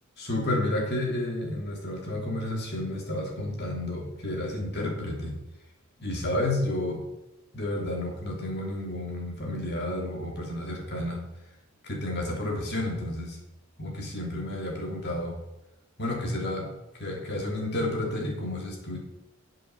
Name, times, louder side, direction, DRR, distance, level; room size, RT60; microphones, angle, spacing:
voice 1, 0.2-5.3 6.0-7.0 7.5-11.2 11.8-13.4 13.8-15.4 16.0-16.7 17.0-19.0, left 1 dB, 50° left, -1 dB, 3.1 m, -31 dB
9.0 x 7.7 x 7.0 m, 0.93 s
head